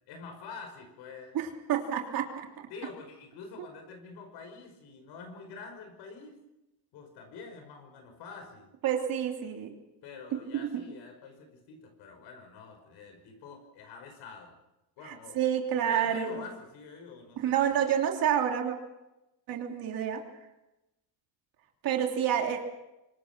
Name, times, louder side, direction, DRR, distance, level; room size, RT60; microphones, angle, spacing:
voice 1, 0.1-1.4 2.7-6.4 6.9-8.7 10.0-14.6 15.0-15.4 15.8-17.5, left 5 dB, 65° left, 4 dB, 5.7 m, -46 dB
voice 2, 1.3-2.3 2.6-2.7 8.8-9.7 10.5-10.7 15.0-16.4 17.4-18.7 19.5-20.2 21.8-22.6, right 9 dB, 50° right, 2 dB, 3.1 m, -28 dB
25.5 x 23.0 x 6.1 m, 0.95 s
cardioid pair, 150°, 43 cm